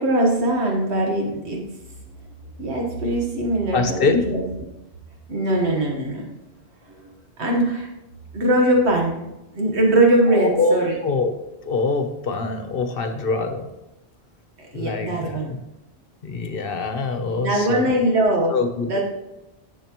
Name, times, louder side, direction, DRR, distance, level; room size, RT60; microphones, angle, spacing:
voice 1, 0.0-1.6 2.6-4.4 5.3-6.3 7.0-7.1 7.4-7.9 8.3-9.3 9.5-10.9 14.7-15.5 17.3-18.5 18.9-19.0, right 1 dB, 85° right, 0 dB, 1.6 m, -21 dB
voice 2, 3.7-4.3 10.3-11.3 11.6-13.7 14.7-15.6 16.2-17.9 18.5-19.0, left 3 dB, 60° left, 7 dB, 1.0 m, -24 dB
10.5 x 7.3 x 3.0 m, 0.94 s
omnidirectional pair, 1.1 m